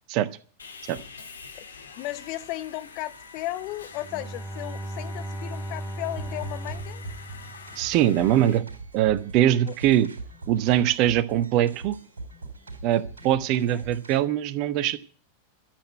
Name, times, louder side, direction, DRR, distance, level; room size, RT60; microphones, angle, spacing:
Sawing, 0.6-8.6, left 5 dB, 70° left, 2.0 m, -46 dB
voice 1, 2.0-7.0 9.7-9.8 13.7-13.9, left 16 dB, 45° left, 1.0 m, -35 dB
Bowed string instrument, 3.9-8.2, right 1 dB, 5° right, 3.3 m, -37 dB
sound 1, 6.2-14.2, right 3 dB, 70° right, 3.7 m, -42 dB
voice 2, 7.8-8.6 8.9-10.1 10.5-12.0 12.8-15.0, right 12 dB, 40° right, 1.1 m, -22 dB
13.5 x 8.2 x 9.2 m
figure-of-eight pair, 90°, 0 cm